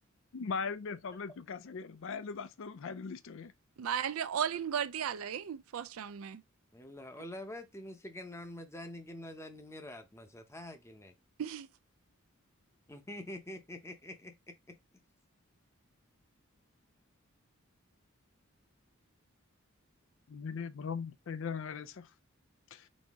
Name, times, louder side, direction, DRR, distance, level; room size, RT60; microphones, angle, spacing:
voice 1, 0.3-3.5 20.3-22.1 22.7-22.9, left 5 dB, 65° left, 0.5 m, -39 dB
voice 2, 3.8-6.4 11.4-11.7, right 8 dB, 85° right, 0.4 m, -35 dB
voice 3, 6.7-11.1 12.9-14.3, left 1 dB, 15° left, 0.7 m, -46 dB
4.2 x 2.7 x 3.5 m
head